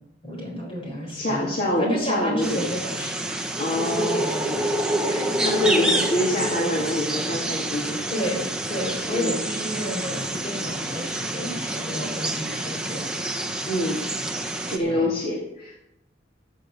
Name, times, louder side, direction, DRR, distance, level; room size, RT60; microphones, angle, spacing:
voice 1, 0.2-3.2 3.7-4.7 8.1-13.1 14.8-15.1, equal, 30° left, 0 dB, 4.6 m, -31 dB
voice 2, 1.1-2.7 3.6-4.4 5.0-8.0 9.1-9.4 11.9-12.1 13.7-14.0 14.7-15.8, left 1 dB, 50° left, -3 dB, 2.3 m, -26 dB
sound 1, 2.4-14.8, right 1 dB, 5° right, 1.2 m, -27 dB
15.0 x 6.8 x 6.6 m, 0.84 s
head